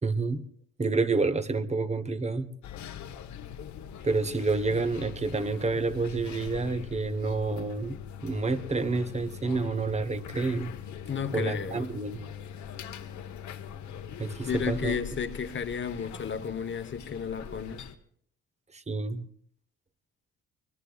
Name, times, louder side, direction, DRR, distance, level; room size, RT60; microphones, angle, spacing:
voice 1, 0.0-0.5 0.8-2.5 4.0-10.7 11.3-12.3 14.2-15.0 18.7-19.3, right 3 dB, 20° right, 1.1 m, -29 dB
sound 1, 2.6-18.0, left 8 dB, 70° left, 1.1 m, -42 dB
voice 2, 11.1-11.9 14.4-17.8, left 6 dB, 40° left, 1.1 m, -33 dB
24.5 x 20.0 x 2.4 m
cardioid pair, 90°, 30 cm